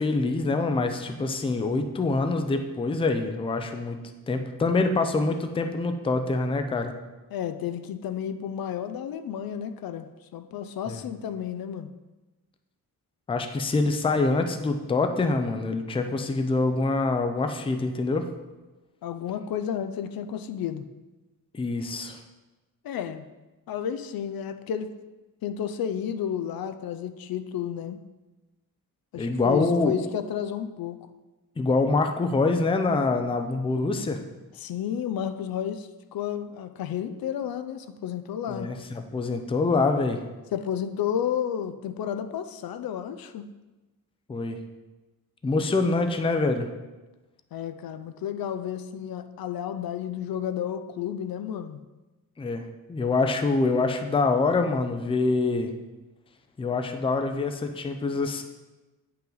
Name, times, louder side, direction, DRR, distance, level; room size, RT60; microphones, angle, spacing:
voice 1, 0.0-4.0 4.3-6.9 10.9-11.0 13.3-18.3 21.5-22.2 29.2-29.9 31.6-34.2 38.5-40.2 44.3-44.6 45.4-46.7 52.4-55.7 56.6-58.4, left 3 dB, 15° left, 6 dB, 0.4 m, -25 dB
voice 2, 7.3-11.9 19.0-20.9 22.8-23.2 23.7-24.9 25.4-28.0 29.1-31.0 34.6-38.7 40.5-43.5 45.6-45.8 47.5-51.8, left 9 dB, 80° left, 9 dB, 0.6 m, -32 dB
8.7 x 5.7 x 3.9 m, 1.1 s
wide cardioid pair, 175°, 35 cm